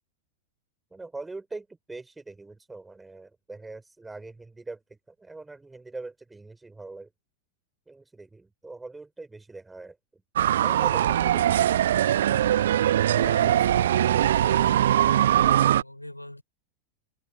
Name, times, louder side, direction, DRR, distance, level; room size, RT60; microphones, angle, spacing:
voice 1, 0.9-7.1 7.9-10.0 10.6-11.8 13.2-13.8, right 3 dB, 10° right, 3.2 m, -42 dB
sound 1, 10.4-15.8, right 11 dB, 60° right, 1.1 m, -21 dB
voice 2, 13.3-16.4, left 1 dB, 85° left, 3.7 m, -42 dB
figure-of-eight pair, 90°, 0 cm